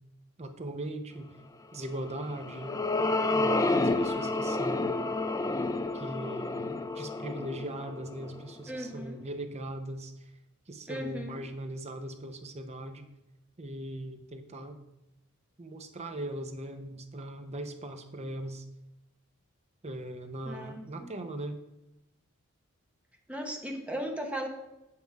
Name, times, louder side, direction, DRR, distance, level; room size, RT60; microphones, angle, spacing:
voice 1, 0.4-1.3 1.7-2.8 3.3-5.0 5.9-10.1 10.7-13.1 13.6-14.8 15.6-18.6 19.8-21.6, right 1 dB, 30° right, 7 dB, 0.8 m, -39 dB
sound 1, 2.1-8.6, left 2 dB, 15° left, 0.4 m, -30 dB
voice 2, 8.7-9.2 10.9-11.4 20.4-21.1 23.3-24.5, equal, 5° right, 2 dB, 1.1 m, -37 dB
7.7 x 7.4 x 4.6 m, 0.92 s
head